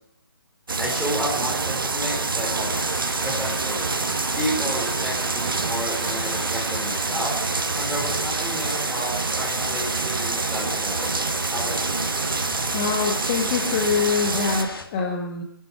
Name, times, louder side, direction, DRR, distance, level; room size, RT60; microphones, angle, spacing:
sound 1, 0.7-14.6, right 4 dB, 65° right, 1.3 m, -26 dB
voice 1, 0.8-2.7 3.2-3.9 4.4-7.3 7.7-12.0, equal, ahead, -5 dB, 4.3 m, -31 dB
sound 2, 1.0-7.5, right 5 dB, 50° right, 1.6 m, -38 dB
sound 3, 2.6-14.8, left 3 dB, 70° left, 2.4 m, -37 dB
voice 2, 12.7-15.4, left 6 dB, 30° left, 1 dB, 1.8 m, -24 dB
27.0 x 11.0 x 4.7 m, 0.71 s
figure-of-eight pair, 135°, 12 cm